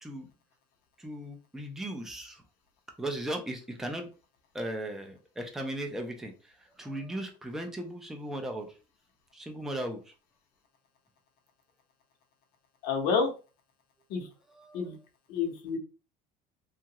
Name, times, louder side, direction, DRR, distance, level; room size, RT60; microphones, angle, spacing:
voice 1, 1.0-2.4 3.0-4.1 4.5-8.7 9.3-10.0 14.6-14.8, right 1 dB, ahead, 3 dB, 0.4 m, -37 dB
voice 2, 12.8-13.3 14.1-14.3 14.7-14.9 15.3-15.8, left 5 dB, 65° left, 3 dB, 0.9 m, -28 dB
2.8 x 2.4 x 2.8 m, 0.33 s
cardioid pair, 150°, 17 cm